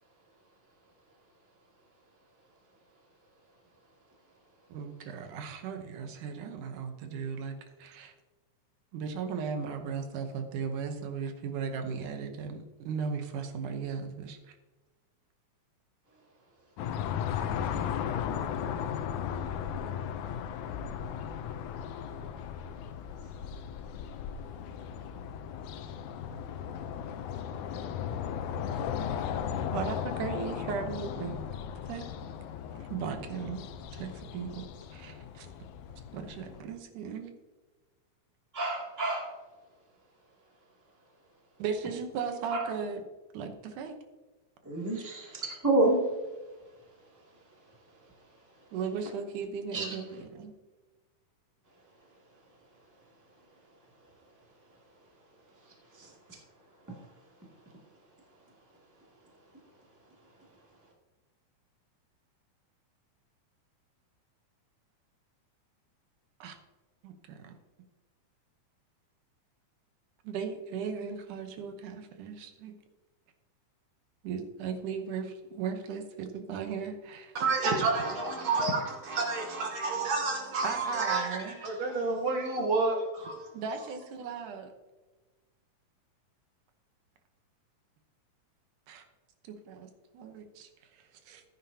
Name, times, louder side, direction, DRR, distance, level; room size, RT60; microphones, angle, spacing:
voice 1, 4.7-8.1 8.9-14.5 29.7-31.4 31.9-32.1 32.8-35.5 36.1-37.3 41.6-43.0 43.3-44.0 48.7-50.5 66.4-66.6 67.0-67.5 70.2-72.8 74.2-77.4 80.6-81.6 83.5-84.7 88.9-89.0 89.4-91.4, right 6 dB, 80° right, 6 dB, 2.5 m, -37 dB
sound 1, 16.8-36.6, left 8 dB, 75° left, 2.0 m, -36 dB
voice 2, 38.5-39.3 44.6-46.0 49.7-49.9 56.0-56.1, right 2 dB, 5° right, -3 dB, 1.8 m, -28 dB
voice 3, 77.4-83.4, right 3 dB, 65° right, 1 dB, 2.1 m, -29 dB
14.5 x 9.5 x 2.8 m, 1.2 s
omnidirectional pair, 3.6 m